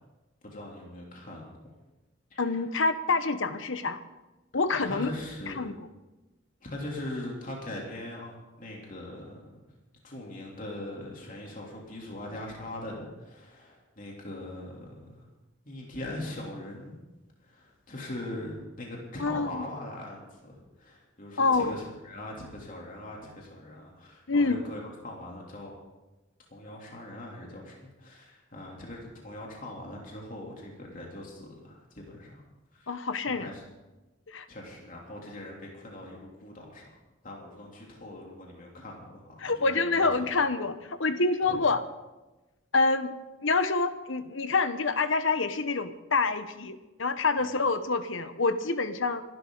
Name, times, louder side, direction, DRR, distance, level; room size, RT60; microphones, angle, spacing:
voice 1, 0.4-1.5 2.3-2.6 4.8-5.7 6.6-9.4 10.0-15.3 15.6-17.0 17.4-25.7 26.5-32.4 32.7-32.9 33.3-33.6 34.5-40.3 41.5-41.6 47.4-47.5, left 1 dB, 40° left, -2 dB, 3.3 m, -41 dB
voice 2, 2.4-4.0 4.5-5.1 5.6-5.7 19.2-19.6 21.4-21.7 24.3-24.6 32.9-33.5 34.3-34.5 39.4-41.8 42.7-43.1 43.4-49.2, left 3 dB, 70° left, 10 dB, 1.1 m, -27 dB
27.0 x 12.0 x 4.0 m, 1.1 s
head